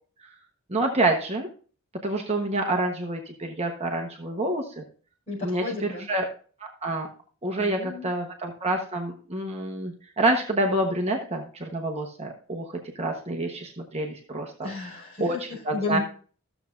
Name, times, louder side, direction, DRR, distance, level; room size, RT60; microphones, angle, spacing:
voice 1, 0.7-1.5 2.0-4.8 5.4-6.3 6.6-7.1 7.4-14.7 15.2-16.0, right 2 dB, 30° right, 2 dB, 1.1 m, -28 dB
voice 2, 5.3-6.1 7.6-8.1 14.6-16.0, left 3 dB, 30° left, -5 dB, 5.4 m, -33 dB
14.0 x 7.1 x 2.5 m, 0.41 s
head